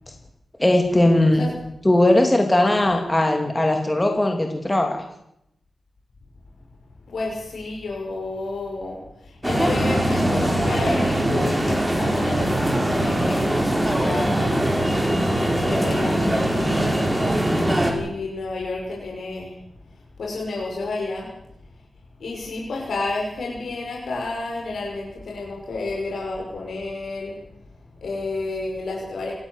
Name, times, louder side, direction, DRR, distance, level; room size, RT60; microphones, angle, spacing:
voice 1, 0.6-1.4 1.8-5.0, left 1 dB, 15° left, 3 dB, 2.7 m, -19 dB
voice 2, 7.1-14.8 15.4-17.4 17.9-19.5 20.2-21.3 22.2-27.4 28.0-29.3, left 3 dB, 70° left, -1 dB, 6.1 m, -30 dB
sound 1, 9.4-17.9, right 1 dB, 10° right, 4.4 m, -21 dB
27.0 x 14.5 x 7.4 m, 0.80 s
wide cardioid pair, 130°, 0 cm